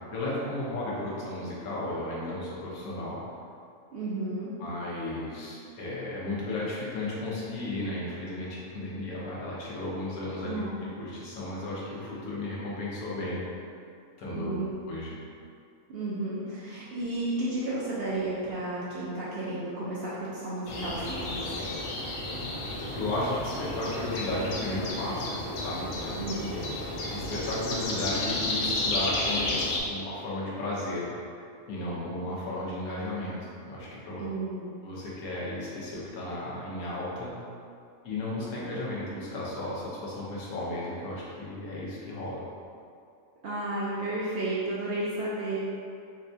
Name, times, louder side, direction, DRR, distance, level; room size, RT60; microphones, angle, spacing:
voice 1, 0.0-3.2 4.6-10.6 11.0-13.6 14.2-14.5 14.9-15.1 22.9-26.2 26.5-26.7 27.1-29.6 29.9-31.3 31.7-34.2 34.8-37.4 38.0-42.4, left 1 dB, 90° left, -6 dB, 1.3 m, -34 dB
voice 2, 3.9-4.5 10.4-10.7 14.3-14.8 15.9-21.6 26.2-26.5 34.2-34.7 43.4-45.6, right 2 dB, 65° right, -8 dB, 0.6 m, -32 dB
sound 1, 20.7-29.8, left 2 dB, 70° left, 0.9 m, -32 dB
3.9 x 2.2 x 2.6 m, 2.4 s
omnidirectional pair, 1.5 m